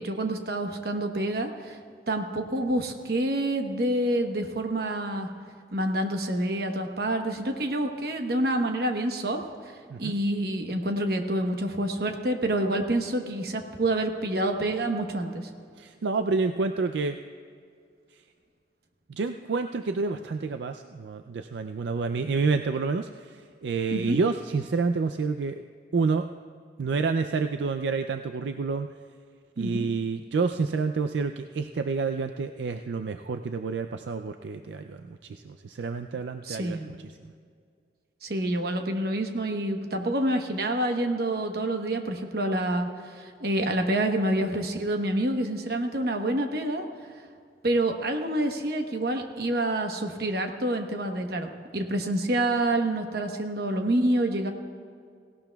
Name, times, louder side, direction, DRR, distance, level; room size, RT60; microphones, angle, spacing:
voice 1, 0.0-1.8 2.1-5.3 5.7-9.4 10.0-15.5 23.9-24.2 29.6-29.9 36.5-36.9 38.2-42.9 43.2-46.8 47.6-54.5, right 1 dB, 60° right, 4 dB, 1.0 m, -27 dB
voice 2, 15.8-17.2 18.1-18.2 19.1-25.6 25.9-26.3 26.8-28.9 29.6-37.2, right 4 dB, 80° right, 8 dB, 0.4 m, -29 dB
17.5 x 17.0 x 2.3 m, 2.2 s
head